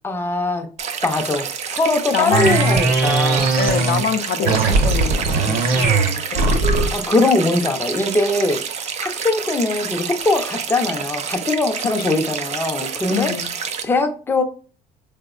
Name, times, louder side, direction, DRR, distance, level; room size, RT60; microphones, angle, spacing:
voice 1, 0.0-0.7 1.0-3.6 4.4-4.6 6.9-8.7 9.0-13.4 13.8-14.4, left 2 dB, 15° left, 0.5 m, -21 dB
sound 1, 0.8-13.8, right 7 dB, 40° right, 0.4 m, -28 dB
voice 2, 2.1-2.8 3.6-6.0 6.3-6.9 12.1-12.2 13.1-13.5, left 7 dB, 70° left, 0.4 m, -26 dB
sound 2, 2.3-4.1 4.4-7.0, right 3 dB, 60° right, 0.8 m, -18 dB
3.4 x 2.0 x 2.3 m
cardioid pair, 110°, 17 cm